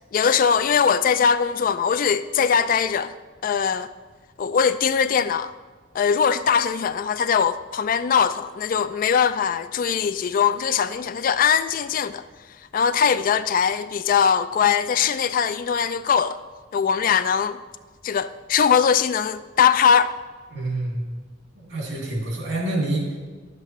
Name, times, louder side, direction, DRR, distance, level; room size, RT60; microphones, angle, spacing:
voice 1, 0.1-3.1 3.4-3.9 4.4-5.5 5.9-12.2 12.7-16.4 16.7-17.6 18.0-20.1, left 7 dB, 45° left, 0.3 m, -21 dB
voice 2, 20.5-21.0 21.5-23.1, right 2 dB, 85° right, 2.6 m, -27 dB
10.5 x 7.4 x 3.1 m
head